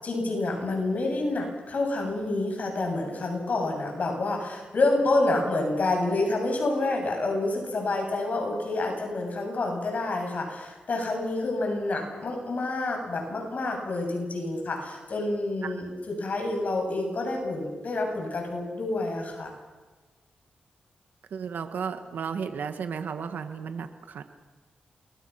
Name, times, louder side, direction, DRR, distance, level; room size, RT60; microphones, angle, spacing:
voice 1, 0.0-19.5, left 2 dB, 60° left, 2 dB, 7.8 m, -28 dB
voice 2, 21.3-24.2, right 6 dB, 80° right, 8 dB, 1.6 m, -34 dB
28.0 x 22.0 x 5.9 m, 1.3 s
cardioid pair, 70°, 3 cm